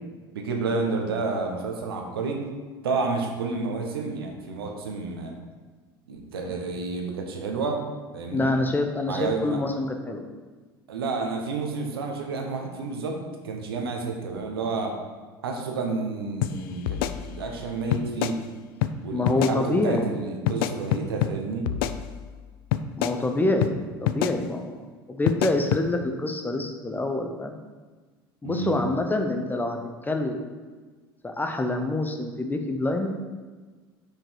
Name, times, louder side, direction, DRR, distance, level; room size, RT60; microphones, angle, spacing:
voice 1, 0.3-2.4 2.8-5.3 6.1-7.8 8.1-8.5 9.1-9.6 10.9-13.2 13.4-15.0 15.4-17.0 17.2-18.4 19.0-21.6 28.4-28.8, right 4 dB, 75° right, 2 dB, 1.1 m, -30 dB
voice 2, 8.3-10.2 19.1-20.1 23.0-27.6 28.4-29.8 30.0-30.4 31.2-33.1, left 2 dB, 15° left, 5 dB, 0.9 m, -26 dB
sound 1, 16.4-16.5 16.9-17.6 17.9-18.4 18.8-18.9 19.3-19.6 20.5-21.3 21.7-22.4 22.7-23.2 23.6-23.7 24.1-24.4 25.3-25.8, left 11 dB, 60° left, 0.4 m, -26 dB
5.9 x 5.1 x 4.7 m, 1.4 s
figure-of-eight pair, 70°, 13 cm